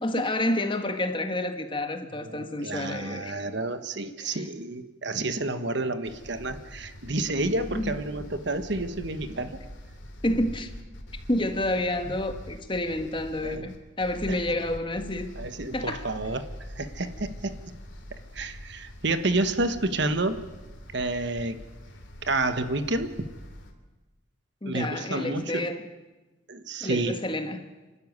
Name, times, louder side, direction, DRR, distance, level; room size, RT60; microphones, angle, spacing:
voice 1, 0.0-3.4 4.2-4.4 7.7-8.0 10.2-10.7 11.3-15.3 15.7-16.1 24.6-25.9 26.8-27.7, left 1 dB, 25° left, 1.5 m, -29 dB
voice 2, 2.2-9.6 13.4-13.7 14.3-14.4 15.4-16.5 16.8-17.6 18.1-20.4 20.9-21.6 22.2-23.1 24.6-25.7 26.5-27.2, right 2 dB, 60° right, 1.3 m, -30 dB
sound 1, 6.0-23.7, equal, 65° left, 3.2 m, -43 dB
29.0 x 12.5 x 9.6 m
head